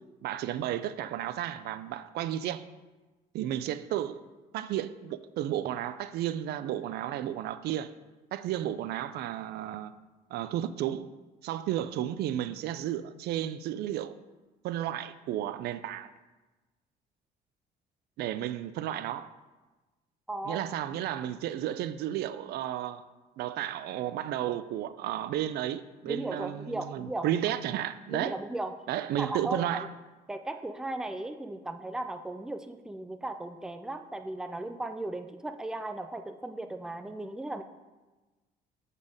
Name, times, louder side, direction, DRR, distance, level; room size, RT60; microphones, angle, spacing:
voice 1, 0.2-2.6 3.3-4.2 4.5-7.9 8.3-9.9 10.3-11.1 11.4-14.1 14.6-16.1 18.2-19.3 20.4-23.0 23.4-28.4 28.9-29.9, right 12 dB, 70° right, 0.4 m, -33 dB
voice 2, 20.3-20.6 26.1-27.3 28.1-28.7 29.2-29.9 30.3-37.6, right 2 dB, 5° right, 0.4 m, -36 dB
7.2 x 4.1 x 5.0 m
cardioid pair, 110°, 17 cm